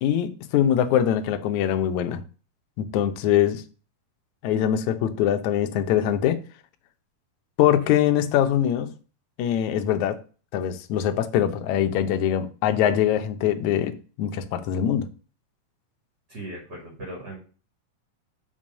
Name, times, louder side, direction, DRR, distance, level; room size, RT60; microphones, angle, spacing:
voice 1, 0.0-2.2 2.8-3.6 4.4-6.4 7.6-8.9 9.4-10.2 10.5-15.1, left 10 dB, 75° left, 8 dB, 1.8 m, -23 dB
voice 2, 16.3-17.4, right 1 dB, 30° right, -2 dB, 2.8 m, -38 dB
5.8 x 5.4 x 6.3 m, 0.37 s
omnidirectional pair, 4.1 m